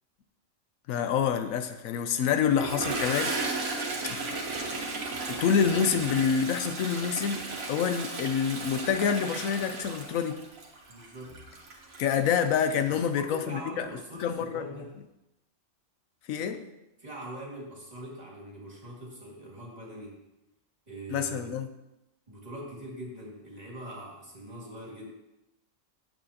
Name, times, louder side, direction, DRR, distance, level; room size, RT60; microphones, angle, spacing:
voice 1, 0.9-3.5 4.0-4.2 5.3-10.4 12.0-13.9 14.1-14.8 16.3-16.7 21.1-21.7, left 7 dB, 80° left, 9 dB, 1.1 m, -27 dB
Toilet flush, 2.4-13.0, right 3 dB, 85° right, 1.6 m, -35 dB
voice 2, 10.9-11.4 12.9-15.0 17.0-20.3 20.9-21.5 22.3-25.1, right 1 dB, 30° right, -4 dB, 2.1 m, -42 dB
8.8 x 7.3 x 2.8 m, 0.94 s
omnidirectional pair, 1.4 m